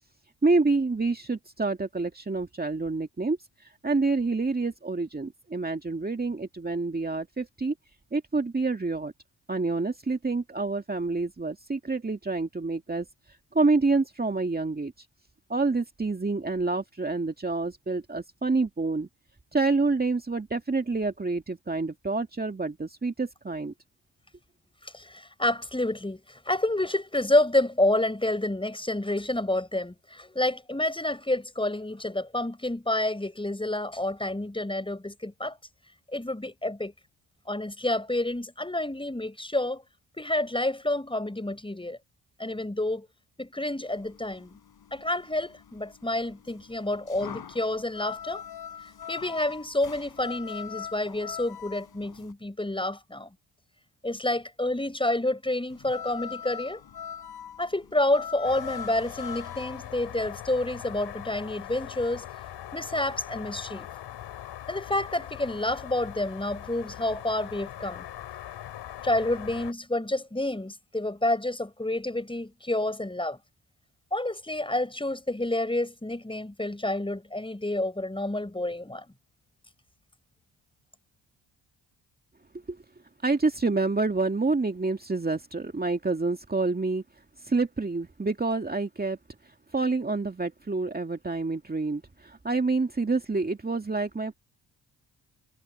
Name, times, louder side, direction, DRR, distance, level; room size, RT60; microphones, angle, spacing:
voice 1, 0.4-3.4 3.8-7.7 8.1-9.1 9.5-13.1 13.5-14.9 15.5-19.1 19.5-23.7 82.7-82.8 83.2-87.0 87.4-89.2 89.7-94.3, right 3 dB, 25° right, 2.2 m, -27 dB
voice 2, 24.8-35.6 36.1-36.9 37.5-39.8 40.2-42.0 42.4-43.1 43.4-44.6 44.9-48.4 49.1-53.3 54.0-56.8 57.6-62.3 62.7-63.9 64.7-68.0 69.0-73.4 74.1-79.0, left 1 dB, 15° left, 6.5 m, -29 dB
sound 1, 43.9-52.3 55.7-59.9, left 8 dB, 65° left, 5.4 m, -41 dB
sound 2, 58.4-69.7, left 12 dB, 85° left, 7.0 m, -41 dB
supercardioid pair, 60°, 40 cm